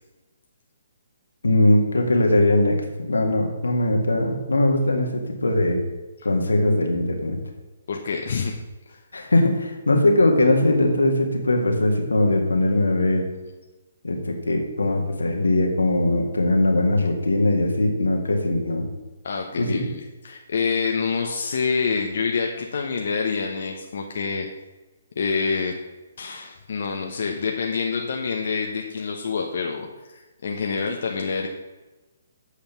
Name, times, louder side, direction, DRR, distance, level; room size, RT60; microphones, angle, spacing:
voice 1, 1.4-5.8 6.2-7.4 9.1-13.2 14.0-18.9 19.6-19.8, left 1 dB, 90° left, 3 dB, 1.9 m, -20 dB
voice 2, 7.9-8.6 8.9-9.0 19.2-24.5 25.2-25.7 26.2-31.5, left 5 dB, 60° left, 2 dB, 0.9 m, -27 dB
8.3 x 5.1 x 7.1 m, 1.2 s
hypercardioid pair, 145°, 0 cm